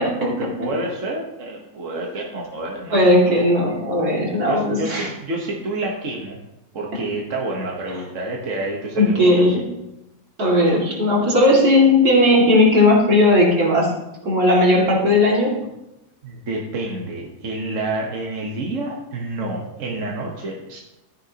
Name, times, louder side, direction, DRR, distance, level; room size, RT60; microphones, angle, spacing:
voice 1, 0.0-3.2 4.5-6.4 6.7-9.5 16.2-20.8, right 2 dB, 55° right, -1 dB, 1.5 m, -28 dB
voice 2, 2.9-5.1 7.9-8.0 9.0-9.6 10.4-13.9 14.2-15.5, left 1 dB, 70° right, -3 dB, 2.8 m, -16 dB
13.0 x 10.0 x 2.9 m, 0.91 s
omnidirectional pair, 1.7 m